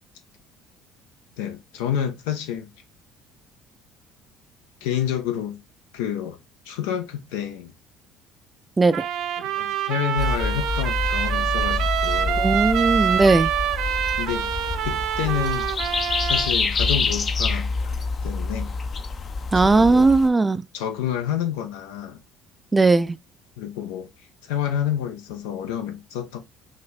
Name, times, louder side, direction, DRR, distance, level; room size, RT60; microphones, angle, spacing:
voice 1, 1.4-2.7 4.8-5.6 5.9-6.4 6.7-7.7 9.4-12.5 13.3-13.4 14.2-14.5 14.8-15.7 16.2-17.7 18.2-18.7 19.6-20.1 20.7-22.2 23.6-24.1 24.4-26.4, left 9 dB, 80° left, 0.8 m, -29 dB
Trumpet, 8.9-16.5, right 10 dB, 65° right, 0.6 m, -26 dB
sound 1, 10.2-20.3, left 4 dB, 40° left, 0.7 m, -27 dB
voice 2, 12.4-13.5 19.5-20.6 22.7-23.2, right 3 dB, 20° right, 0.4 m, -18 dB
5.8 x 2.5 x 3.3 m
hypercardioid pair, 65°, 0 cm